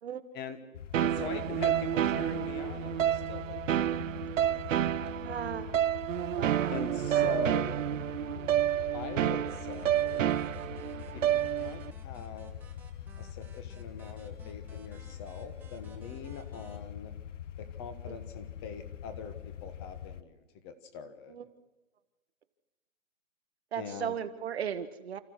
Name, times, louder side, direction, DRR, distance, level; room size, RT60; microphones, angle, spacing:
sound 1, 0.7-20.2, left 10 dB, 65° left, 0.8 m, -44 dB
sound 2, 0.9-11.9, right 11 dB, 70° right, 0.6 m, -29 dB
voice 1, 1.0-4.2 4.5-4.8 5.1-5.2 6.7-7.8 8.9-10.3 11.1-12.5 13.2-17.1 17.6-21.4 23.8-24.1, left 5 dB, 20° left, 10 dB, 1.1 m, -43 dB
voice 2, 5.2-5.7 6.4-6.8 7.1-7.4 8.3-8.4 18.1-18.2 21.3-21.5 23.7-25.2, right 9 dB, 50° right, 11 dB, 1.2 m, -37 dB
sound 3, 9.5-16.8, right 6 dB, 5° right, 1.3 m, -58 dB
29.0 x 14.0 x 6.4 m, 1.1 s
hypercardioid pair, 155°, 40 cm